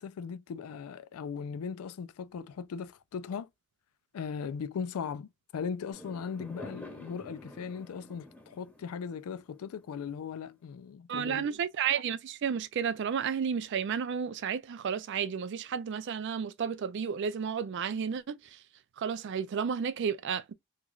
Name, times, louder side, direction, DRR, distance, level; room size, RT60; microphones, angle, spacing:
voice 1, 0.0-3.5 4.1-11.5, left 6 dB, 80° left, 0.3 m, -38 dB
Fireworks, 5.9-10.4, left 1 dB, 5° left, 1.1 m, -49 dB
voice 2, 11.1-18.6 19.0-20.5, right 7 dB, 55° right, 0.3 m, -32 dB
3.0 x 2.4 x 2.3 m
head